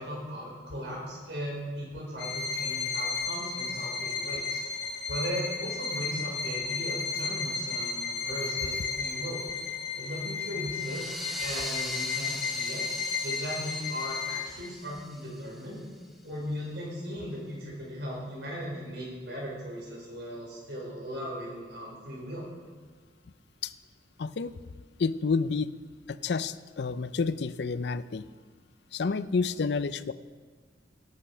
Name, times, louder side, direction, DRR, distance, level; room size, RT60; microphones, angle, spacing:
voice 1, 0.0-4.6 5.1-9.4 10.0-12.8 13.2-15.8 16.2-22.5, equal, 75° right, -3 dB, 4.9 m, -37 dB
Bowed string instrument, 2.2-14.7, left 5 dB, 90° left, 2.6 m, -33 dB
sound 1, 10.7-16.1, equal, ahead, 1.0 m, -41 dB
voice 2, 24.2-24.5 25.0-25.7 26.1-28.2 28.9-30.1, left 4 dB, 65° left, 15 dB, 0.5 m, -29 dB
18.0 x 8.3 x 5.6 m, 1.5 s
head